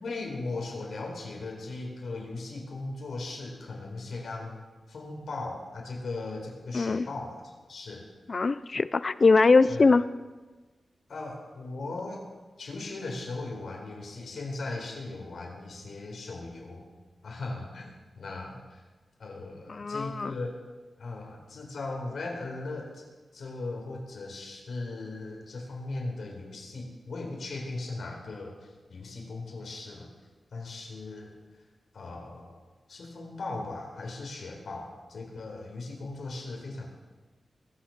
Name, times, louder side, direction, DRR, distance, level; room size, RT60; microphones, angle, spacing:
voice 1, 0.0-4.6 4.9-8.0 9.7-9.9 11.1-12.3 12.6-16.9 17.2-18.8 19.2-20.6 21.0-23.0 23.3-30.1 30.5-31.3 31.9-32.6 32.9-36.9, left 3 dB, 75° left, 0 dB, 4.1 m, -38 dB
voice 2, 6.7-7.1 8.3-10.0 19.7-20.3, left 4 dB, 40° left, 15 dB, 0.5 m, -22 dB
22.0 x 7.5 x 6.6 m, 1.3 s
wide cardioid pair, 135°, 0 cm